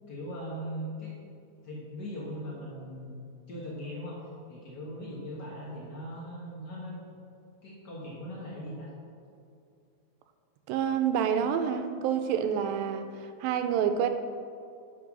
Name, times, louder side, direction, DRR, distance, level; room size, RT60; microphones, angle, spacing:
voice 1, 0.1-1.1 1.6-4.2 4.5-7.2 7.6-8.9, equal, 80° left, -5 dB, 0.9 m, -39 dB
voice 2, 10.7-14.1, right 8 dB, 80° right, 8 dB, 2.3 m, -28 dB
9.9 x 5.9 x 6.1 m, 2.5 s
omnidirectional pair, 4.3 m